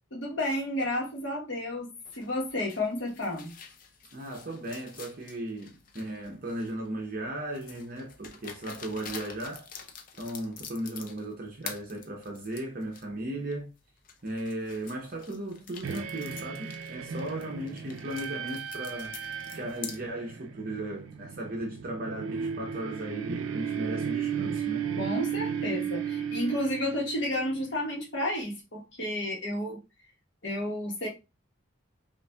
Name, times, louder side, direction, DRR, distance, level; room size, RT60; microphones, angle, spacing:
voice 1, 0.1-3.5 25.0-29.8 30.4-31.1, left 1 dB, 65° left, 1.2 m, -31 dB
sound 1, 2.1-6.9 7.5-11.3 11.6-13.0 13.5-13.6 14.0-20.0, left 6 dB, 45° left, 0.5 m, -46 dB
voice 2, 4.1-9.7 10.2-13.7 14.2-19.1 19.5-24.9, right 1 dB, 45° right, 0.7 m, -36 dB
sound 2, 15.8-27.9, right 7 dB, 85° right, 0.4 m, -35 dB
5.3 x 2.5 x 2.3 m
head